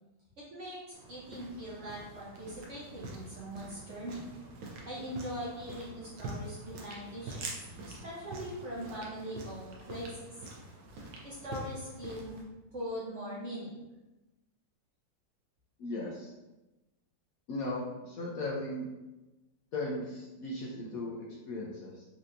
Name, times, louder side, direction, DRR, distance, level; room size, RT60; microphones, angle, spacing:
voice 1, 0.4-0.8 1.1-4.3 4.9-7.4 7.8-10.1 11.2-12.3 12.7-13.7, equal, 55° right, -6 dB, 0.8 m, -41 dB
sound 1, 0.9-12.4, right 2 dB, 85° right, 1.3 m, -45 dB
voice 2, 15.8-16.3 17.5-18.9 19.7-22.1, left 2 dB, 70° left, -3 dB, 0.9 m, -37 dB
4.3 x 2.8 x 2.5 m, 1.1 s
omnidirectional pair, 1.9 m